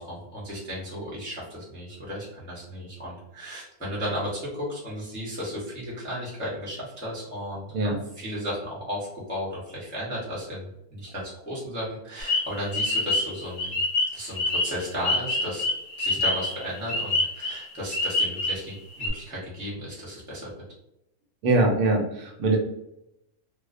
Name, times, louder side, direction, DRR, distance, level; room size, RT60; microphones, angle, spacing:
voice 1, 0.0-13.8 14.1-15.6 16.0-20.5, equal, 15° left, -8 dB, 0.4 m, -34 dB
sound 1, 12.2-18.7 19.0-19.1, left 2 dB, 70° left, 0.9 m, -26 dB
voice 2, 21.4-22.6, right 2 dB, 75° right, 0 dB, 1.0 m, -22 dB
2.4 x 2.0 x 2.4 m, 0.83 s
omnidirectional pair, 1.6 m